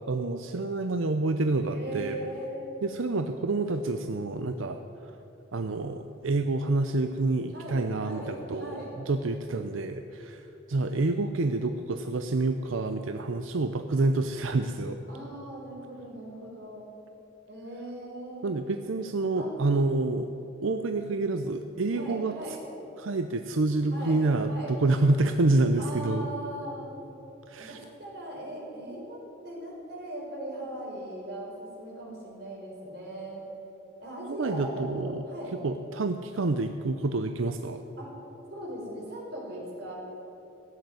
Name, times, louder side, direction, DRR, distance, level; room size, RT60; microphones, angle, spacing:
voice 1, 0.1-2.1 2.8-5.1 5.5-10.4 10.7-15.0 18.4-20.3 20.6-22.4 23.0-26.3 27.5-27.8 34.4-35.2 35.6-37.8, right 2 dB, 90° right, 7 dB, 0.6 m, -28 dB
voice 2, 1.7-2.8 7.5-8.9 15.1-16.8 17.5-18.6 19.4-19.5 21.9-22.6 23.9-24.7 25.8-27.0 27.6-33.4 34.0-35.5 38.0-38.1 38.5-39.9, right 1 dB, 55° right, -3 dB, 4.5 m, -39 dB
16.0 x 8.0 x 9.2 m, 2.9 s
head